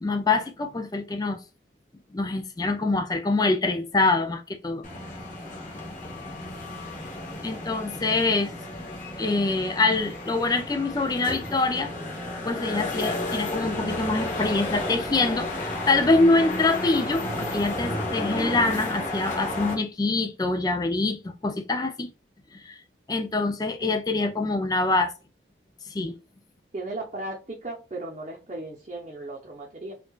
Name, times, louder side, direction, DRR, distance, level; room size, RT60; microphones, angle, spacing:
voice 1, 0.0-1.4 2.1-4.9 7.4-8.5 9.2-11.9 12.4-22.1 22.5-22.8 23.1-25.1 25.9-26.2, left 3 dB, 20° left, 0.4 m, -25 dB
sound 1, 4.8-19.7, left 1 dB, 40° left, 1.2 m, -32 dB
voice 2, 26.7-29.9, right 2 dB, 35° right, 0.7 m, -36 dB
4.5 x 2.4 x 2.3 m
head